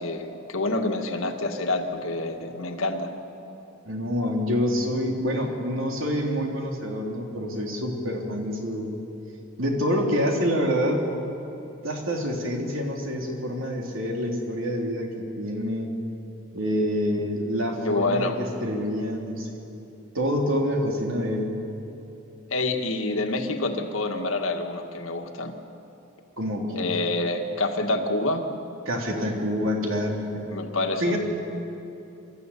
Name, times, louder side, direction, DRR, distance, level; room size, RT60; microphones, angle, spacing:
voice 1, 0.0-3.1 17.8-18.4 22.5-25.5 26.7-28.4 30.5-31.2, left 2 dB, 85° left, 4 dB, 1.8 m, -27 dB
voice 2, 3.8-8.9 9.6-11.0 11.8-15.9 16.5-19.7 20.1-21.5 26.4-26.9 28.9-30.3 31.0-31.2, equal, 75° right, 1 dB, 3.1 m, -27 dB
25.0 x 13.0 x 8.4 m, 3.0 s
head